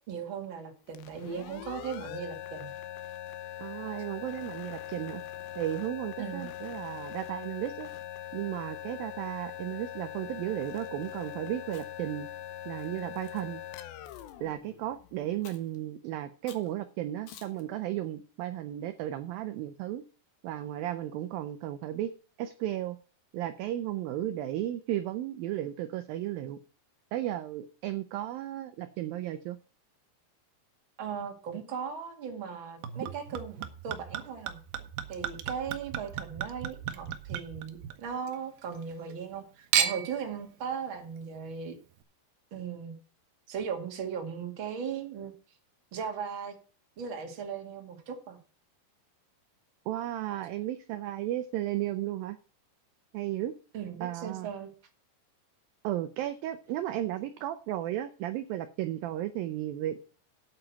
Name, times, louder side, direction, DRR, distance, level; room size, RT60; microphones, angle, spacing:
voice 1, 0.1-2.7 6.2-6.5 31.0-33.6 33.8-34.6 35.1-41.8 42.5-43.0 43.5-45.3 45.9-46.6 47.0-48.4 53.7-54.7, right 7 dB, 40° right, 3 dB, 2.1 m, -37 dB
sound 1, 0.9-15.5, left 12 dB, 80° left, 3.1 m, -42 dB
voice 2, 3.6-5.2 5.6-7.9 8.3-12.3 12.7-13.6 14.4-20.0 20.4-22.1 22.4-23.0 23.3-26.6 27.1-29.6 49.9-52.4 53.1-53.5 54.0-54.5 55.8-60.0, right 13 dB, 90° right, 10 dB, 2.0 m, -34 dB
Chewing mastication, 11.6-12.1 12.8-13.4 14.1-14.3 15.4-15.8 16.5-16.7 17.3-17.6, left 8 dB, 65° left, 2.9 m, -52 dB
Chink clink / Liquid, 32.8-38.3 38.7-39.4 39.7-40.2 41.0-41.1, right 9 dB, 70° right, 2.7 m, -34 dB
8.9 x 8.9 x 5.8 m, 0.38 s
omnidirectional pair, 5.1 m